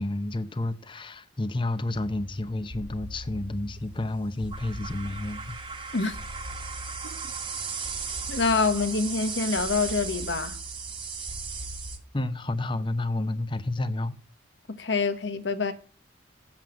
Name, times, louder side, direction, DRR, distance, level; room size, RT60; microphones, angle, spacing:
voice 1, 0.0-5.6 12.1-14.1, left 2 dB, 25° left, 0.7 m, -30 dB
sound 1, 1.9-12.0, right 4 dB, 25° right, 1.2 m, -36 dB
voice 2, 8.3-10.6 14.7-15.7, left 4 dB, 65° left, 1.1 m, -26 dB
7.8 x 7.4 x 7.3 m
head